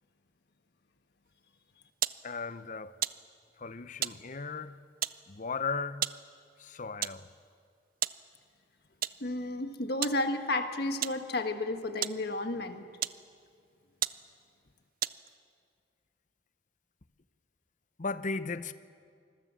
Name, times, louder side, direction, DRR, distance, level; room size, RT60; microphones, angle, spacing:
sound 1, 2.0-2.2 3.0-3.2 4.0-4.2 5.0-5.2 6.0-6.2 7.0-7.2 8.0-8.2 9.0-9.2 10.0-10.2 11.0-11.2 12.0-12.2 13.0-13.2 13.7-13.8 14.0-14.2 15.0-15.4, right 12 dB, 55° right, 0.6 m, -33 dB
voice 1, 2.2-2.9 3.6-4.8 5.3-6.0 6.6-7.3 18.0-18.7, left 4 dB, 45° left, 0.8 m, -36 dB
voice 2, 9.2-12.8, left 2 dB, 65° left, 1.5 m, -32 dB
26.0 x 21.0 x 7.5 m
head